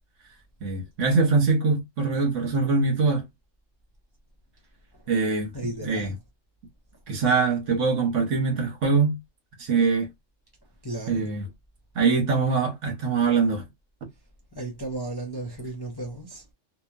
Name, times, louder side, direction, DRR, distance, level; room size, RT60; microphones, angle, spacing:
voice 1, 0.6-3.2 5.1-5.5 5.8-6.1 7.1-9.2 9.6-10.1 11.1-11.5 11.9-13.7, right 4 dB, 70° right, 1.2 m, -23 dB
voice 2, 5.5-6.2 10.8-11.3 14.5-16.4, right 2 dB, 25° left, 0.5 m, -34 dB
2.9 x 2.2 x 2.4 m
omnidirectional pair, 1.3 m